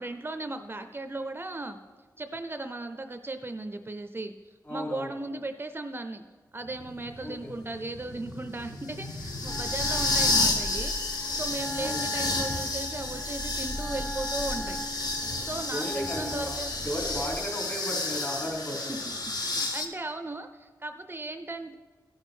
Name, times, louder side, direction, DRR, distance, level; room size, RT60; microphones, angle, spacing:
voice 1, 0.0-1.8 2.2-4.3 4.7-6.2 6.5-10.9 11.3-14.8 15.5-16.9 19.1-21.7, right 2 dB, 30° right, 8 dB, 0.5 m, -37 dB
voice 2, 4.6-5.1 7.2-7.5 11.8-12.0 15.7-18.9, equal, 35° left, -2 dB, 3.4 m, -35 dB
sound 1, 6.7-19.8, left 2 dB, 65° left, 1.1 m, -31 dB
sound 2, 9.2-17.4, equal, 5° left, 0.8 m, -41 dB
Wind instrument woodwind instrument, 9.4-16.7, equal, 20° left, 1.4 m, -40 dB
15.5 x 6.3 x 4.4 m, 1.4 s
wide cardioid pair, 90°, 7 cm